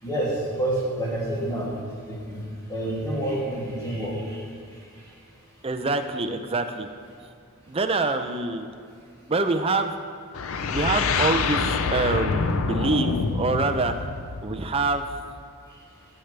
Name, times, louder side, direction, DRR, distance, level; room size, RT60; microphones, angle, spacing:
voice 1, 0.0-5.2 15.7-15.8, right 1 dB, 15° left, -7 dB, 2.5 m, -29 dB
voice 2, 5.6-6.9 7.7-8.7 9.3-9.9 10.7-13.9 14.4-15.0, right 3 dB, 25° right, 7 dB, 0.5 m, -25 dB
sound 1, 10.3-15.2, left 4 dB, 75° left, 0.5 m, -26 dB
16.0 x 6.8 x 3.3 m, 2.3 s
head